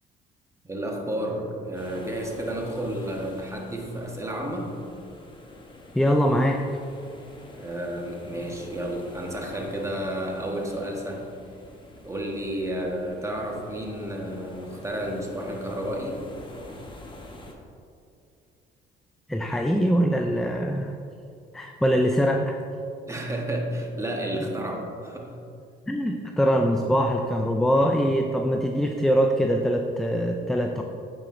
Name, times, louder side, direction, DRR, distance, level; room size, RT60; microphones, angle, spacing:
voice 1, 0.6-4.7 7.6-11.2 12.0-16.2 23.1-25.3, right 1 dB, 15° right, 0 dB, 1.2 m, -31 dB
sound 1, 1.7-17.5, left 1 dB, 25° left, 0.9 m, -46 dB
voice 2, 5.9-6.6 19.3-21.0 21.5-22.6 25.9-30.8, equal, ahead, 3 dB, 0.3 m, -23 dB
8.8 x 4.8 x 2.6 m, 2.5 s
supercardioid pair, 80°, 21 cm